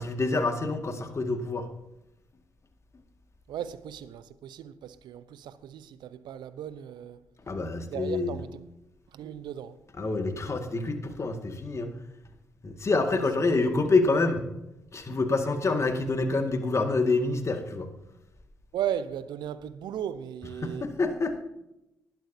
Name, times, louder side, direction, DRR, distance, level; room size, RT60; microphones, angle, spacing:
voice 1, 0.0-1.7 7.5-8.4 10.0-11.9 12.6-14.4 14.9-17.9 20.6-21.4, left 3 dB, 35° left, 2.0 m, -27 dB
voice 2, 3.5-7.2 7.9-8.6 9.1-9.8 13.1-13.9 18.7-20.9, right 10 dB, 65° right, 0.8 m, -36 dB
19.5 x 10.5 x 2.8 m
figure-of-eight pair, 40°, 8 cm